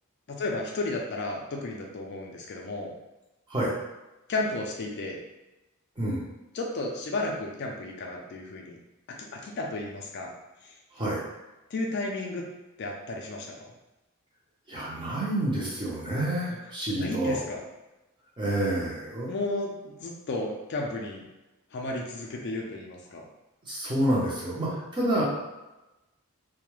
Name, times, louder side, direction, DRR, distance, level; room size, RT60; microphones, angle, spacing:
voice 1, 0.3-2.9 4.3-5.2 6.5-8.8 9.1-10.3 10.6-10.7 11.7-12.5 12.8-13.7 16.9-17.6 19.3-21.3 21.7-23.2, left 2 dB, 50° left, 0 dB, 0.4 m, -33 dB
voice 2, 6.0-6.3 10.9-11.2 14.7-17.4 18.4-19.3 23.6-25.2, right 1 dB, 20° right, -6 dB, 0.6 m, -28 dB
2.2 x 2.1 x 3.0 m, 1.0 s
head